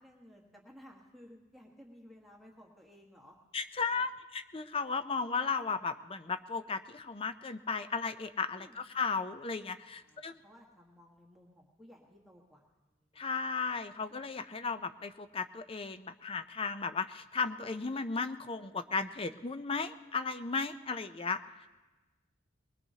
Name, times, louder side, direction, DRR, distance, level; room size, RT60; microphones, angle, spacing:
voice 1, 0.0-3.4 8.5-8.8 9.9-12.6 13.1-13.2, equal, ahead, -2 dB, 1.4 m, -57 dB
voice 2, 3.5-10.3 13.2-21.4, left 4 dB, 30° left, 10 dB, 0.5 m, -35 dB
21.5 x 20.5 x 2.8 m, 1.2 s
head